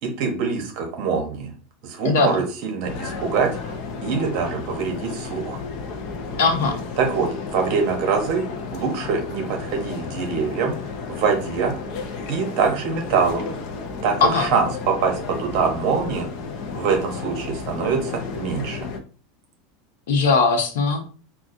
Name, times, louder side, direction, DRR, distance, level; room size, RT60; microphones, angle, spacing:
voice 1, 0.0-1.5 1.8-3.5 4.0-5.6 7.0-8.4 8.7-10.8 11.1-11.7 12.3-13.4 14.0-16.3 16.7-18.8, right 5 dB, 50° right, 2 dB, 1.0 m, -24 dB
voice 2, 2.0-2.4 6.4-6.8 14.2-14.5 20.1-21.1, left 4 dB, 90° left, 4 dB, 1.0 m, -19 dB
sound 1, 2.8-19.0, left 4 dB, 45° left, 0.6 m, -33 dB
5.8 x 2.4 x 2.6 m, 0.40 s
supercardioid pair, 165°, 0 cm